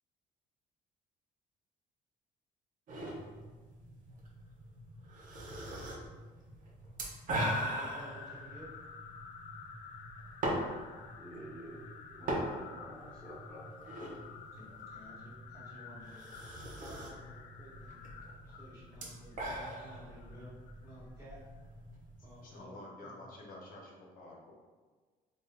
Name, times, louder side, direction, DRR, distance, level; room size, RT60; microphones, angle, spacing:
sound 1, 2.9-22.6, right 1 dB, 50° right, 0.8 m, -42 dB
voice 1, 7.5-8.8 14.5-16.1 16.8-18.1 18.4-20.6 20.8-21.4 22.2-23.2, equal, 20° right, -8 dB, 1.2 m, -53 dB
sound 2, 7.6-20.9, left 6 dB, 85° left, 0.4 m, -52 dB
voice 2, 11.2-11.8 12.1-13.7, right 1 dB, 5° left, -11 dB, 1.1 m, -49 dB
voice 3, 22.2-24.5, left 2 dB, 55° left, -2 dB, 0.9 m, -50 dB
3.5 x 2.8 x 2.5 m, 1.4 s
cardioid pair, 110°, 17 cm